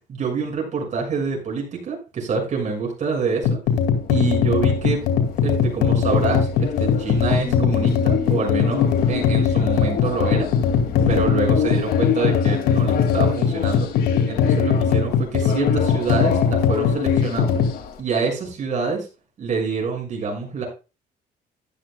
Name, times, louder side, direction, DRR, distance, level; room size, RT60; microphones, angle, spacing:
voice 1, 0.1-3.6 4.1-5.0 5.4-10.5 11.0-13.9 14.3-17.6 18.0-19.1 19.4-20.7, right 5 dB, 45° right, 1 dB, 6.5 m, -26 dB
sound 1, 3.4-17.7, left 6 dB, 90° left, 2.5 m, -20 dB
sound 2, 3.9-18.0, left 9 dB, 65° left, 2.4 m, -29 dB
sound 3, 7.4-10.8, left 3 dB, 25° left, 3.1 m, -38 dB
14.0 x 11.5 x 2.3 m, 0.31 s
cardioid pair, 110°, 17 cm